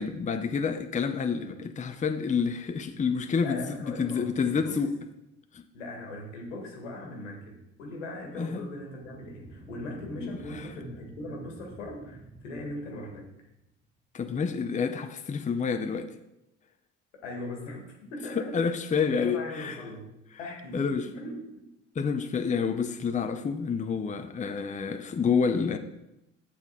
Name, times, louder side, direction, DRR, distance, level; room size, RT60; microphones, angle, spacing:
voice 1, 0.0-4.9 5.5-5.6 8.4-8.7 10.2-10.7 14.1-16.1 18.3-19.8 20.7-21.1 21.9-25.8, left 5 dB, 20° left, 0.7 m, -28 dB
voice 2, 3.3-4.8 5.7-13.5 17.2-18.7 19.1-21.7, left 1 dB, 85° left, 2.0 m, -40 dB
sound 1, 8.8-13.7, right 2 dB, 10° right, 1.1 m, -48 dB
8.1 x 7.2 x 4.3 m
hypercardioid pair, 65°, 36 cm